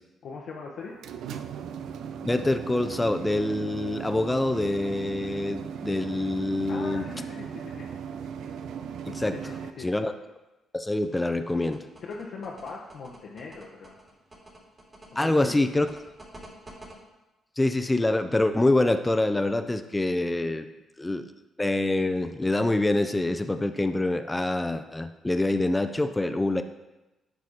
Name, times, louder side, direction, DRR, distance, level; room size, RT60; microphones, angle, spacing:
voice 1, 0.2-1.0 6.7-7.9 9.3-9.9 12.0-14.0 15.1-15.6, left 4 dB, 60° left, -4 dB, 1.0 m, -40 dB
sound 1, 0.8-9.7, right 7 dB, 65° right, 0.4 m, -37 dB
voice 2, 2.2-7.1 9.1-9.4 9.8-10.1 10.7-11.8 15.2-15.9 17.6-20.7 21.0-21.3 21.6-26.6, left 2 dB, 15° left, 8 dB, 0.7 m, -25 dB
sound 2, 11.0-16.9, right 1 dB, 30° right, 2.7 m, -48 dB
10.5 x 4.8 x 4.1 m, 1.0 s
hypercardioid pair, 45°, 0 cm